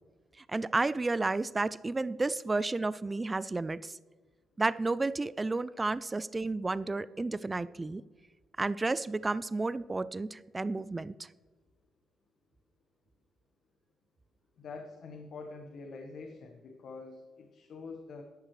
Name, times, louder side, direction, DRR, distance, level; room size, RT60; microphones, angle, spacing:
voice 1, 0.4-3.9 4.6-8.0 8.6-11.3, right 3 dB, 20° right, 18 dB, 0.3 m, -32 dB
voice 2, 14.6-18.2, left 4 dB, 65° left, 3 dB, 1.2 m, -45 dB
13.0 x 11.5 x 3.2 m, 1.4 s
cardioid pair, 90°, 0 cm